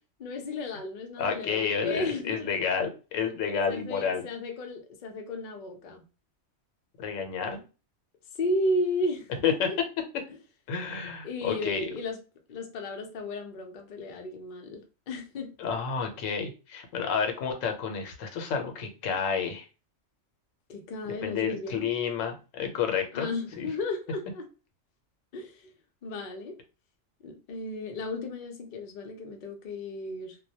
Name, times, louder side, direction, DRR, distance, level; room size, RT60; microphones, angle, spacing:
voice 1, 0.2-2.5 3.7-6.0 8.4-9.8 10.3-10.4 11.2-12.2 12.5-15.5 20.7-21.9 23.1-24.5 25.3-25.7 26.0-26.6 27.2-30.3, left 2 dB, 55° left, 0.6 m, -34 dB
voice 2, 1.2-4.3 7.0-7.6 9.4-9.5 10.7-11.9 15.6-19.6 21.2-23.3 23.6-23.7, left 6 dB, 90° left, 1.0 m, -30 dB
2.2 x 2.1 x 2.6 m
omnidirectional pair, 1.3 m